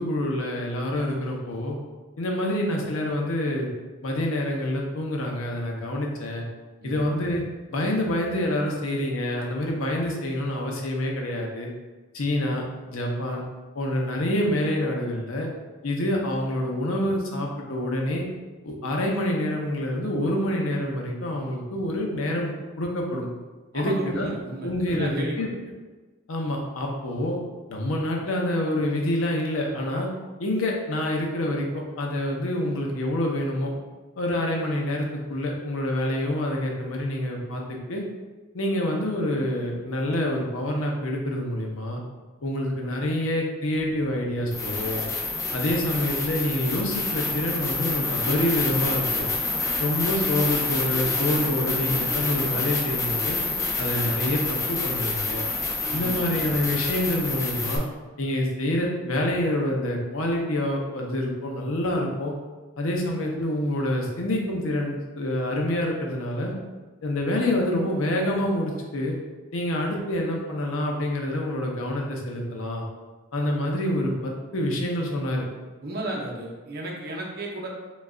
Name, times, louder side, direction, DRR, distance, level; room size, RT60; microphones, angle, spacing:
voice 1, 0.0-1.8 2.2-3.7 4.0-6.5 6.8-7.4 7.7-11.7 12.1-12.6 12.9-13.4 13.7-15.5 15.8-18.3 18.6-22.5 22.8-23.3 23.7-24.3 24.6-25.5 26.3-27.4 27.7-30.1 30.4-33.7 34.2-38.0 38.5-42.0 42.4-45.1 45.5-49.3 49.8-53.4 53.8-55.5 55.9-57.9 58.2-62.3 62.8-66.5 67.0-69.2 69.5-72.8 73.3-75.5, left 1 dB, 80° left, 0 dB, 0.6 m, -27 dB
voice 2, 23.7-25.5 55.9-56.4 75.8-77.7, right 1 dB, 50° right, -1 dB, 0.6 m, -34 dB
sound 1, 44.5-57.8, left 3 dB, 15° left, 0.3 m, -28 dB
3.1 x 2.3 x 3.6 m, 1.3 s
head